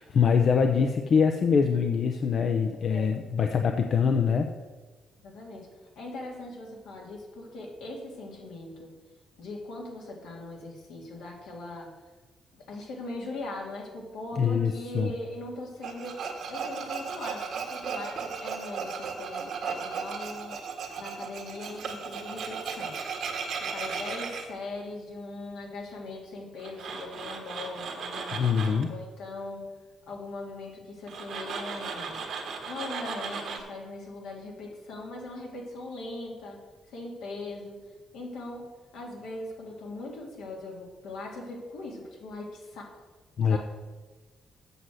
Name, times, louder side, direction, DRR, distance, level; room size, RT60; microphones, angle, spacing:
voice 1, 0.0-4.5 14.4-15.1 28.3-29.0 43.4-43.6, left 6 dB, 60° left, 5 dB, 0.6 m, -24 dB
voice 2, 5.2-5.7 6.0-8.9 9.4-11.9 12.5-20.6 21.0-23.0 23.5-28.4 28.9-29.6 30.1-32.2 32.7-37.8 38.1-43.1 43.5-43.6, left 2 dB, 85° left, -1 dB, 2.2 m, -40 dB
Tools, 15.8-24.4 26.6-28.9 31.1-33.6, right 5 dB, 70° right, 1.5 m, -36 dB
7.9 x 6.2 x 6.3 m, 1.3 s
supercardioid pair, 70°, 0 cm